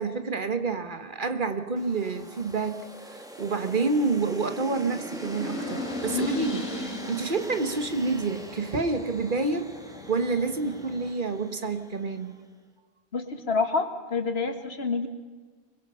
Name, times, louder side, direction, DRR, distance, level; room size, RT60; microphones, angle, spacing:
voice 1, 0.0-9.7 10.1-12.4, right 3 dB, 55° right, 8 dB, 1.6 m, -28 dB
sound 1, 1.8-12.1, equal, 5° right, 2.1 m, -40 dB
sound 2, 5.1-11.1, left 3 dB, 30° left, 1.4 m, -41 dB
voice 2, 6.1-6.5 13.1-15.1, left 4 dB, 85° left, 7 dB, 2.2 m, -28 dB
24.5 x 22.0 x 5.7 m, 1.4 s
omnidirectional pair, 1.0 m